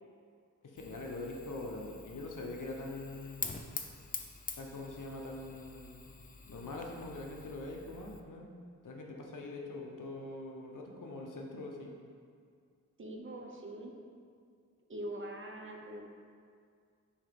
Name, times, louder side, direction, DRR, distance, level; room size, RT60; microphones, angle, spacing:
voice 1, 0.6-3.6 4.6-6.1 6.5-8.5 8.8-12.0, left 2 dB, 75° left, 0 dB, 0.9 m, -43 dB
Fire, 0.8-8.2, left 4 dB, 25° left, 0.4 m, -46 dB
voice 2, 13.0-13.9 14.9-16.1, right 1 dB, 40° right, 1 dB, 0.7 m, -43 dB
7.1 x 2.9 x 5.1 m, 2.2 s
wide cardioid pair, 105°, 32 cm